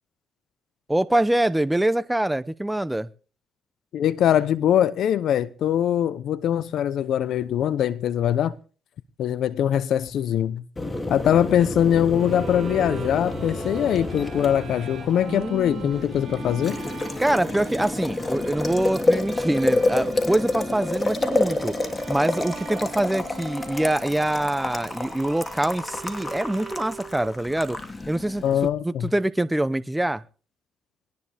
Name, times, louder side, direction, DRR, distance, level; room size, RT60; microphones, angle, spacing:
voice 1, 0.9-3.1 15.3-15.9 17.2-21.8 22.1-27.8 28.1-28.4 28.8-30.2, right 1 dB, 10° right, 0.9 m, -24 dB
voice 2, 3.9-8.5 9.2-10.6 11.1-16.8 28.4-29.1, left 10 dB, 75° left, 0.9 m, -22 dB
Boiling, 10.8-28.7, left 2 dB, 25° left, 2.9 m, -29 dB
Bowed string instrument, 12.1-27.4, right 6 dB, 45° right, 5.9 m, -41 dB
21.0 x 18.5 x 3.6 m
cardioid pair, 90°, 0 cm